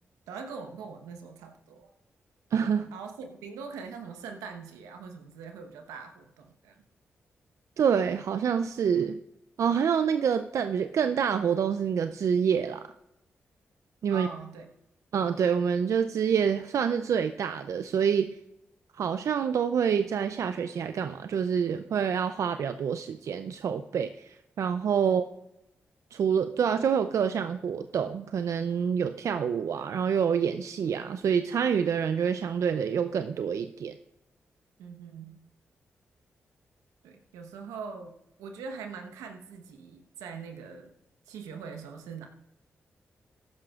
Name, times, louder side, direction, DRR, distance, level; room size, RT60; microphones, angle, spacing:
voice 1, 0.3-1.9 2.9-6.8 14.1-14.7 25.0-25.2 34.8-35.4 37.0-40.9 41.3-42.3, right 5 dB, 90° right, 5 dB, 1.1 m, -42 dB
voice 2, 2.5-2.9 7.8-9.2 9.6-12.9 14.0-14.3 15.1-18.4 18.9-25.3 26.1-34.0, right 7 dB, 70° right, 9 dB, 0.5 m, -27 dB
14.5 x 11.5 x 2.4 m, 0.85 s
supercardioid pair, 40°, 6 cm